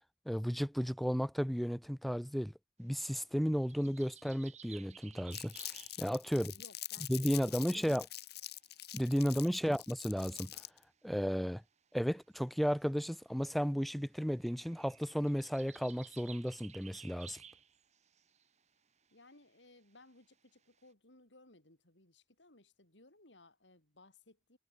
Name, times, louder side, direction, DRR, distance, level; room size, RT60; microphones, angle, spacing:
voice 1, 0.3-2.5 2.8-5.5 6.0-6.5 7.1-8.0 8.9-10.5 11.0-11.6 11.9-17.4, equal, ahead, 0.6 m, -33 dB
sound 1, 2.8-6.8 7.5-7.6 7.8-8.6 9.1-9.2 10.2-11.0 12.1-18.6 19.0-19.8 20.1-20.9, right 8 dB, 40° right, 2.3 m, -57 dB
Crumpling crinkling, 5.3-10.8, left 15 dB, 60° left, 1.5 m, -45 dB
voice 2, 6.3-8.0 9.5-9.7 19.1-24.6, left 2 dB, 80° left, 6.3 m, -61 dB
head